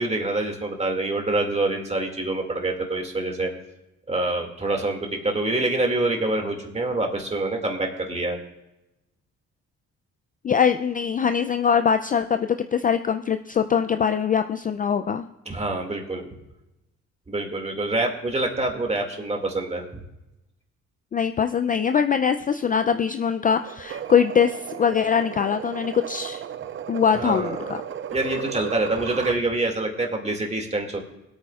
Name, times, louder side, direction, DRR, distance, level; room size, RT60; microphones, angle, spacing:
voice 1, 0.0-3.5 4.1-8.4 15.5-16.3 17.3-20.0 27.1-27.8 28.1-31.0, right 2 dB, 20° right, 2 dB, 2.1 m, -26 dB
voice 2, 10.4-15.2 21.1-26.4 26.9-27.8, left 7 dB, 30° left, 8 dB, 0.3 m, -22 dB
sound 1, 23.6-29.4, right 9 dB, 40° right, 0.4 m, -35 dB
23.0 x 8.6 x 2.4 m, 0.96 s
cardioid pair, 90°, 30 cm